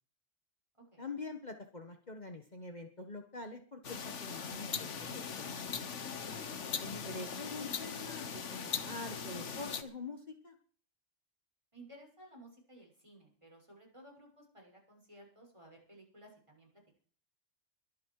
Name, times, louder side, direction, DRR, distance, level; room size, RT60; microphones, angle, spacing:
voice 1, 1.0-5.5 6.8-10.5, left 3 dB, 40° left, 5 dB, 1.6 m, -45 dB
sound 1, 3.8-9.8, left 6 dB, 85° left, 1.6 m, -40 dB
voice 2, 11.7-16.7, right 1 dB, 25° right, 0 dB, 6.5 m, -57 dB
23.0 x 9.4 x 4.8 m, 0.44 s
omnidirectional pair, 1.2 m